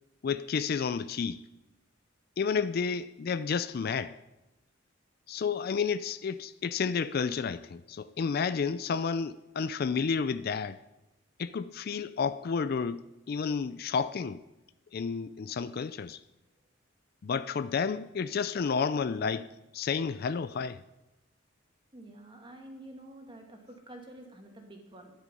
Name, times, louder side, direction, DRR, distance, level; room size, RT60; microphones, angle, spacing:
voice 1, 0.2-1.4 2.4-4.2 5.3-10.8 11.4-14.4 14.9-16.2 17.2-20.8, left 5 dB, 50° left, 0.4 m, -31 dB
voice 2, 21.9-25.1, right 1 dB, 25° right, 2.1 m, -48 dB
12.0 x 10.5 x 5.4 m
head